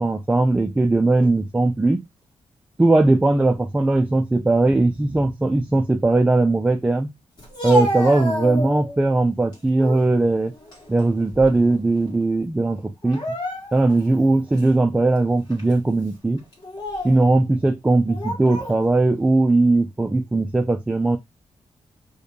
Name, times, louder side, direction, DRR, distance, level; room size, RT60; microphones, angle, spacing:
voice 1, 0.0-2.0 2.8-7.1 7.6-10.5 10.9-13.2 13.7-16.4 17.0-21.2, right 2 dB, 10° right, 0.3 m, -19 dB
Speech, 7.4-9.0 9.5-10.1 10.5-11.8 12.0-12.2 13.0-14.0 14.6-14.7 15.5-15.7 16.5-17.2 18.1-18.8, equal, 40° left, 1.7 m, -29 dB
4.8 x 2.2 x 3.1 m
wide cardioid pair, 115°, 11 cm